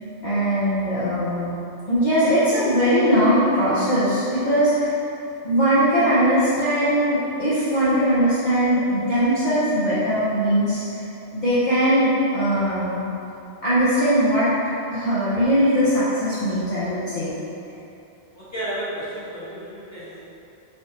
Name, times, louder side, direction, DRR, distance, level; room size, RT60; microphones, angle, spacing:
voice 1, 0.2-1.6 1.9-5.0 5.4-11.0 11.3-13.0 13.6-14.5 14.9-17.3, equal, 45° left, -12 dB, 0.8 m, -20 dB
voice 2, 18.3-20.2, right 1 dB, 15° left, -12 dB, 1.2 m, -32 dB
4.2 x 3.3 x 2.9 m, 2.8 s
omnidirectional pair, 1.1 m